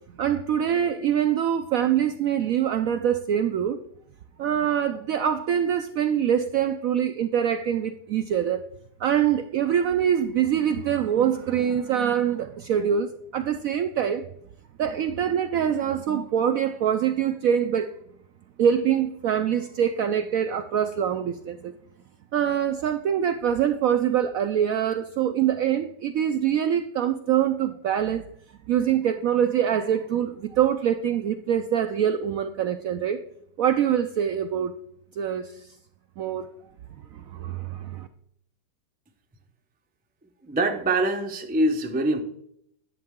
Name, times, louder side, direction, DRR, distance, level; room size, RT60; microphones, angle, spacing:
voice 1, 0.2-3.8 4.4-8.6 9.0-14.2 14.8-17.9 18.6-21.7 22.3-28.2 28.7-33.2 33.6-34.7 35.2-35.7 36.2-36.5 37.1-38.1, right 9 dB, 75° right, 0.8 m, -24 dB
voice 2, 40.4-42.2, right 2 dB, 15° right, 0.3 m, -24 dB
10.5 x 7.5 x 3.6 m
omnidirectional pair, 1.9 m